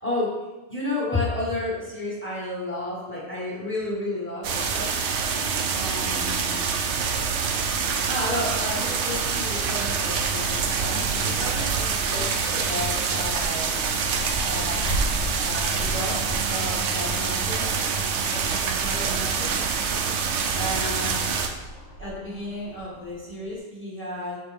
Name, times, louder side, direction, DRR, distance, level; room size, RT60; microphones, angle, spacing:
voice 1, 0.0-5.0 5.8-6.6 8.1-13.8 14.4-14.8 15.4-17.8 18.2-19.6 20.5-21.2 22.0-24.4, left 1 dB, 10° left, -6 dB, 1.7 m, -32 dB
sound 1, 4.4-21.5, right 5 dB, 65° right, 0.9 m, -26 dB
Wind, 11.4-23.6, right 1 dB, 60° left, 1.1 m, -37 dB
6.8 x 4.4 x 3.5 m, 1.2 s
omnidirectional pair, 1.4 m